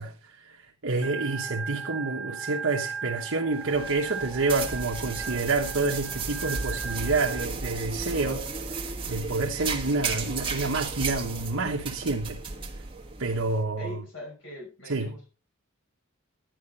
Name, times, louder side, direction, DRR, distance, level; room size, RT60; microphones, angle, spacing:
voice 1, 0.0-12.4 13.2-14.0 14.9-15.1, right 3 dB, 65° right, 1.1 m, -28 dB
Organ, 1.0-7.4, right 6 dB, ahead, 0.7 m, -37 dB
sound 1, 3.5-13.5, right 4 dB, 25° right, 1.4 m, -34 dB
voice 2, 13.8-15.3, equal, 60° left, 5.8 m, -41 dB
12.0 x 9.8 x 4.2 m
head